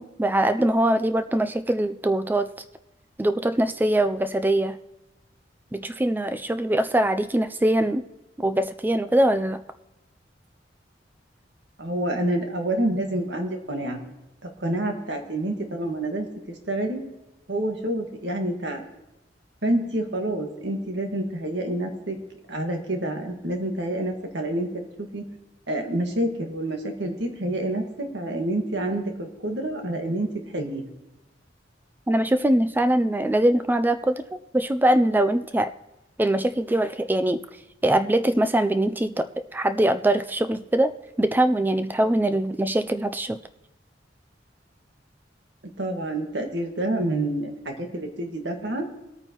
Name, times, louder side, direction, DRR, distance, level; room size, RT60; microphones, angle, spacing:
voice 1, 0.0-2.5 3.2-4.8 5.7-8.0 8.4-9.6 32.1-34.2 34.5-35.7 36.2-37.4 37.8-39.3 39.5-43.4, right 1 dB, 10° right, 10 dB, 0.3 m, -22 dB
voice 2, 11.8-14.0 14.6-16.3 16.7-17.0 17.5-18.8 19.6-22.2 22.5-25.2 25.7-30.3 30.5-30.8 45.8-48.8, right 1 dB, 70° right, 4 dB, 1.7 m, -28 dB
21.5 x 8.9 x 3.0 m, 0.95 s
head